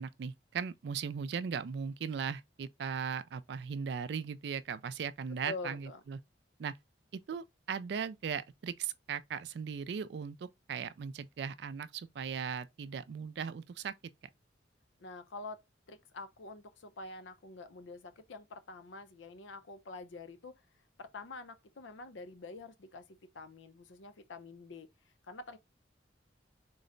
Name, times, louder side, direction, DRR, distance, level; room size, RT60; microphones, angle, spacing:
voice 1, 0.0-6.2 6.6-6.7 7.3-13.9, right 6 dB, 65° right, 0.3 m, -38 dB
voice 2, 5.3-6.0 15.0-15.6 15.9-20.5 21.0-25.6, left 3 dB, 80° left, 0.6 m, -46 dB
3.8 x 2.1 x 3.7 m
head